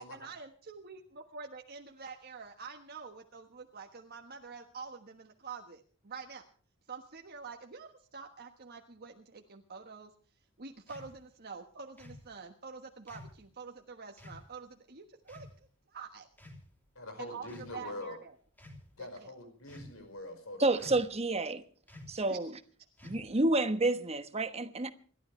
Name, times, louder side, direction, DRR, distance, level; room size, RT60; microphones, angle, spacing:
voice 1, 0.0-6.4 6.9-10.1 10.6-15.5 15.9-16.3 17.2-18.3 19.0-19.3 22.3-22.4 23.1-23.2, right 5 dB, 50° right, 1.4 m, -47 dB
sound 1, 10.9-11.1 12.0-12.3 13.1-13.4 14.2-14.4 15.3-15.6 16.3-16.9 17.4-17.8 18.5-18.8 19.7-20.1 20.8-21.2 21.9-22.2 23.0-23.4, left 1 dB, 10° left, 3.2 m, -50 dB
voice 2, 17.0-18.2 19.0-20.9, left 1 dB, 80° left, 5.3 m, -44 dB
voice 3, 20.6-21.6 22.1-22.5 23.0-24.9, right 2 dB, 30° right, 1.2 m, -29 dB
28.0 x 12.5 x 3.3 m
head